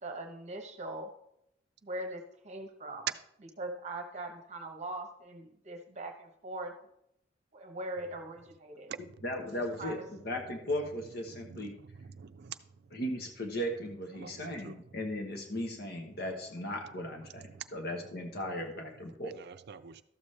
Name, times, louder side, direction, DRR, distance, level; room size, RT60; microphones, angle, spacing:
voice 1, 0.0-1.1 1.8-3.1 3.6-6.7 7.5-8.9 9.6-10.0, right 2 dB, 40° right, 4 dB, 0.9 m, -41 dB
voice 2, 9.2-11.7 12.9-19.3, left 1 dB, 55° left, 3 dB, 1.1 m, -37 dB
voice 3, 11.3-12.6 14.1-14.8 17.5-17.6 19.4-20.0, right 7 dB, 60° right, 11 dB, 0.5 m, -46 dB
13.0 x 7.1 x 3.3 m, 0.77 s
head